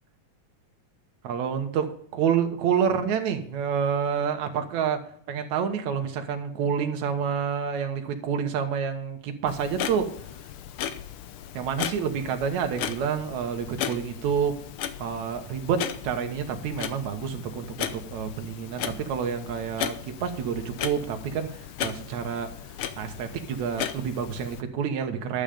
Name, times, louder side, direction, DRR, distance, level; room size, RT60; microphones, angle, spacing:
voice 1, 1.2-1.9 2.1-5.0 5.3-10.1 11.5-14.5 15.0-22.5 23.0-25.4, right 7 dB, 75° right, 6 dB, 2.5 m, -28 dB
Clock, 9.5-24.6, left 9 dB, 85° left, 1.2 m, -36 dB
11.5 x 9.0 x 5.2 m, 0.64 s
omnidirectional pair, 3.4 m